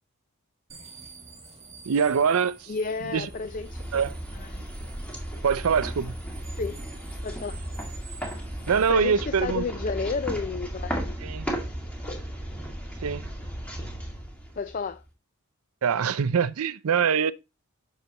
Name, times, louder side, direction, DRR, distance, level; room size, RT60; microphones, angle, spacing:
sound 1, 0.7-8.9, right 4 dB, 30° right, 1.5 m, -49 dB
voice 1, 1.9-2.7 3.1-3.3 3.9-4.1 5.4-6.1 8.7-9.6 11.2-11.5 13.0-13.3 15.8-17.3, right 6 dB, 75° right, 0.5 m, -24 dB
voice 2, 2.7-4.0 4.4-4.7 6.6-6.8 7.2-7.6 8.9-11.2 14.6-15.0, left 4 dB, 40° left, 0.4 m, -31 dB
sound 2, 2.9-15.0, right 1 dB, 5° left, 2.0 m, -35 dB
9.0 x 6.5 x 2.9 m
head